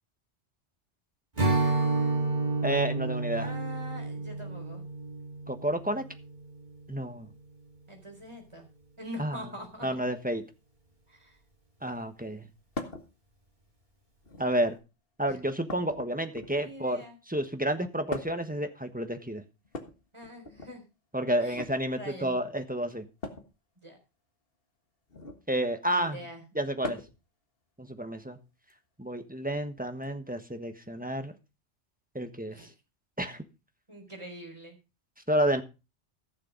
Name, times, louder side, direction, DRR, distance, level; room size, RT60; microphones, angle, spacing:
Strum, 1.4-6.8, right 3 dB, 40° right, 3.3 m, -30 dB
voice 1, 2.6-3.5 5.5-6.0 6.9-7.3 9.2-9.4 9.8-10.4 11.8-12.5 14.4-14.8 15.2-17.0 17.3-19.4 21.1-23.1 25.5-26.2 26.5-27.0 27.8-28.4 29.0-31.3 32.1-32.7 33.2-33.4 35.3-35.6, right 1 dB, 10° right, 7 dB, 1.2 m, -30 dB
voice 2, 3.3-4.8 7.9-8.7 9.0-9.9 11.1-11.4 15.3-15.4 16.5-17.2 20.1-20.8 21.4-21.6 21.9-22.4 23.8-24.0 25.9-26.4 32.5-32.7 33.9-34.8, equal, 25° right, 3 dB, 4.2 m, -44 dB
sound 1, 12.7-13.1 14.1-14.6 15.7-16.8 18.1-18.5 19.6-20.7 21.4-21.7 23.2-23.5 25.1-25.5 26.8-27.2 28.7-28.8 30.0-30.1, left 2 dB, 55° left, 1.8 m, -40 dB
15.0 x 6.7 x 5.1 m, 0.29 s
omnidirectional pair, 1.2 m